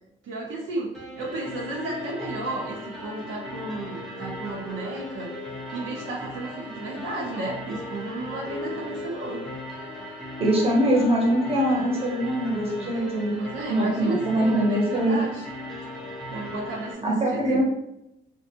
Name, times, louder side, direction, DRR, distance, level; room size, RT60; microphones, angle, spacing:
voice 1, 0.2-5.3 5.7-9.4 13.3-15.4 16.3-17.6, right 2 dB, 80° right, -2 dB, 0.6 m, -33 dB
sound 1, 0.9-16.9, left 1 dB, ahead, 0.8 m, -37 dB
voice 2, 10.4-13.3 13.7-15.2 17.0-17.6, right 1 dB, 30° right, -2 dB, 0.9 m, -23 dB
2.5 x 2.2 x 2.8 m, 0.87 s
cardioid pair, 90°, 20 cm